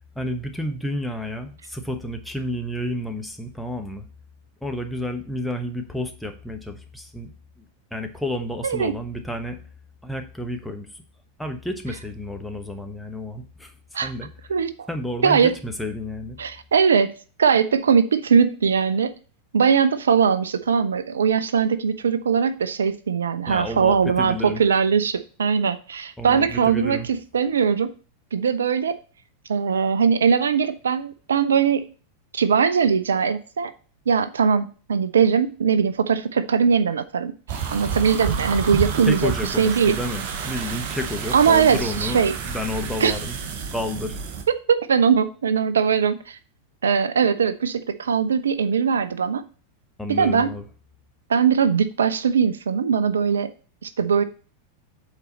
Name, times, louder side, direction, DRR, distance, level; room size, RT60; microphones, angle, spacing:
voice 1, 0.1-4.1 4.6-7.3 7.6-7.7 7.9-9.6 10.0-11.0 11.4-13.7 14.0-14.3 14.9-16.4 23.5-24.6 26.2-27.1 39.1-43.4 43.7-44.2 50.0-50.6, left 1 dB, ahead, 4 dB, 1.0 m, -30 dB
voice 2, 8.6-8.9 13.9-14.1 14.5-14.9 15.2-15.5 16.4-17.1 17.4-19.1 19.5-27.9 28.3-29.0 29.5-31.9 32.3-33.7 34.1-37.3 37.7-39.3 39.6-40.0 41.3-42.3 43.0-43.2 44.5-46.4 46.8-49.5 50.1-50.5 51.3-53.5 53.8-54.2, right 6 dB, 70° right, 13 dB, 0.4 m, -20 dB
sound 1, 37.5-44.4, right 6 dB, 45° right, 0.9 m, -29 dB
8.2 x 4.1 x 4.1 m, 0.39 s
figure-of-eight pair, 90°, 0 cm